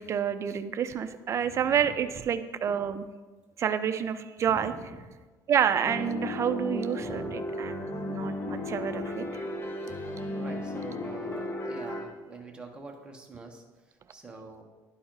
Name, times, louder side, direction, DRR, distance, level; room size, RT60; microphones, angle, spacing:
voice 1, 0.0-3.1 3.6-4.7 5.5-7.2 7.6-9.2, right 8 dB, 40° right, 10 dB, 0.5 m, -28 dB
voice 2, 1.4-1.9 4.5-5.0 7.0-7.5 8.5-9.4 9.9-14.6, right 3 dB, 10° right, 1 dB, 1.2 m, -45 dB
sound 1, 5.9-12.1, left 1 dB, 30° left, 1.0 m, -35 dB
11.5 x 4.2 x 3.9 m, 1.3 s
cardioid pair, 115°, 8 cm